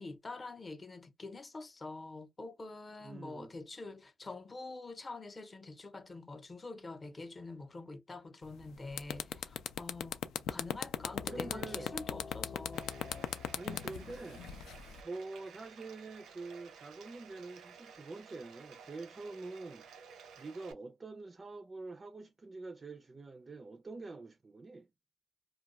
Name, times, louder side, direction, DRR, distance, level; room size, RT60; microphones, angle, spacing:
voice 1, 0.0-13.0, left 3 dB, 30° left, 0.6 m, -46 dB
voice 2, 3.0-3.6 11.3-11.9 13.6-14.5 15.0-20.1 20.4-24.9, right 3 dB, 30° right, 0.3 m, -46 dB
sound 1, 8.5-8.6 8.9-15.0, left 9 dB, 85° left, 0.4 m, -37 dB
sound 2, 10.9-16.0, left 6 dB, 60° left, 0.8 m, -50 dB
Bathtub (filling or washing), 12.7-20.7, right 6 dB, 85° right, 0.5 m, -55 dB
2.2 x 2.1 x 3.8 m
cardioid pair, 90°, 0 cm